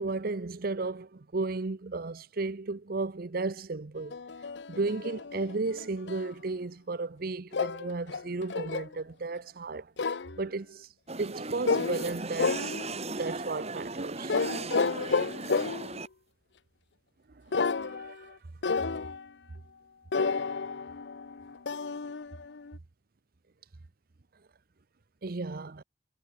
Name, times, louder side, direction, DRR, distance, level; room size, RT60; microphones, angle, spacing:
voice 1, 0.0-4.2 4.7-10.9 11.2-12.7 13.0-14.4 17.5-18.3 25.2-25.8, right 3 dB, 55° right, 0.8 m, -34 dB
sound 1, 4.1-6.3 7.5-9.0 10.0-10.4 11.7-12.1 12.4-13.1 14.3-16.0 17.5-18.3 18.6-19.3 20.1-22.8, left 4 dB, 80° left, 0.7 m, -31 dB
sound 2, 11.1-16.1, right 3 dB, 40° right, 4.2 m, -37 dB
head